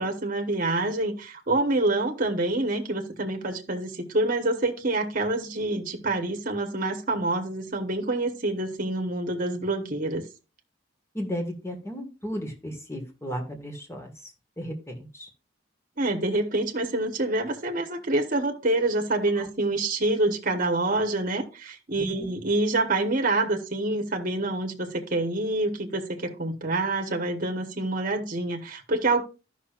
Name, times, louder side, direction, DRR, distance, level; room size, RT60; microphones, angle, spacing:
voice 1, 0.0-10.2 16.0-29.2, right 2 dB, 45° right, 1.2 m, -27 dB
voice 2, 11.1-14.1 14.6-15.3 22.0-22.3, equal, 15° left, 1.7 m, -34 dB
14.0 x 5.9 x 2.5 m
head